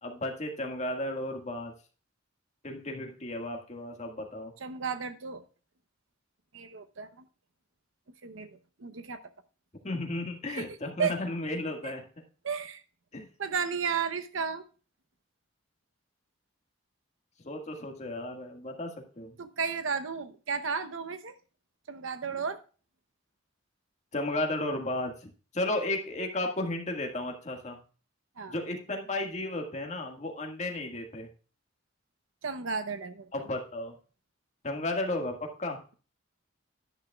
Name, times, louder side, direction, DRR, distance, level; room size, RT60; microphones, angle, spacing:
voice 1, 0.0-1.7 2.6-4.5 9.8-12.0 13.1-13.3 17.4-19.4 24.1-27.8 28.5-31.3 33.3-33.9 34.6-35.8, left 2 dB, 35° left, 3 dB, 1.7 m, -34 dB
voice 2, 4.6-5.4 6.5-7.2 8.2-9.2 10.5-10.6 11.0-11.2 11.8-11.9 12.4-12.8 13.4-14.6 19.4-21.3 21.9-22.6 28.4-28.5 32.4-33.3, right 6 dB, 80° right, 9 dB, 0.8 m, -33 dB
11.5 x 9.9 x 2.3 m, 0.37 s
head